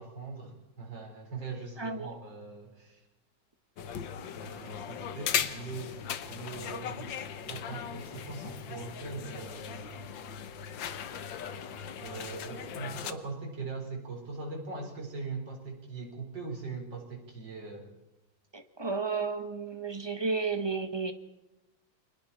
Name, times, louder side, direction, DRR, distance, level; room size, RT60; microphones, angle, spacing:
voice 1, 0.0-3.0 4.3-10.0 12.0-17.9, right 4 dB, 60° right, 2 dB, 4.9 m, -41 dB
voice 2, 1.8-2.1 18.5-21.1, right 4 dB, 15° right, 8 dB, 1.1 m, -32 dB
sound 1, 3.8-13.1, left 8 dB, 70° left, 1.7 m, -38 dB
29.5 x 23.5 x 4.3 m, 0.93 s
omnidirectional pair, 2.2 m